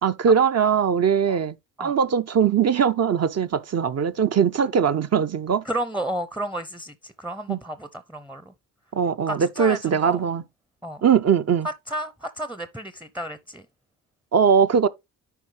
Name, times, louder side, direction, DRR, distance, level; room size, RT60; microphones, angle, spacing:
voice 1, 0.0-5.6 7.5-7.6 8.9-10.4 11.0-11.7 14.3-14.9, right 7 dB, 40° right, 0.6 m, -21 dB
voice 2, 5.6-8.5 9.3-10.2 10.8-11.0 11.6-13.7, right 1 dB, 5° right, 0.6 m, -32 dB
10.0 x 3.6 x 3.3 m
supercardioid pair, 60°, 38 cm